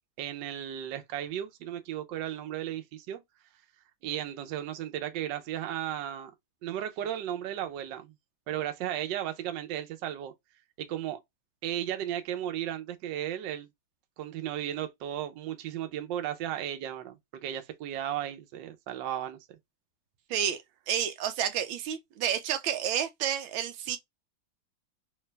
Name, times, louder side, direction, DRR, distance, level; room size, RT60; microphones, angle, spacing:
voice 1, 0.2-3.2 4.0-6.3 6.6-8.1 8.5-10.3 10.8-11.2 11.6-13.7 14.2-19.4, right 11 dB, 70° right, 1.3 m, -35 dB
voice 2, 20.9-24.0, right 9 dB, 85° right, 1.5 m, -30 dB
3.3 x 2.9 x 3.2 m
omnidirectional pair, 2.2 m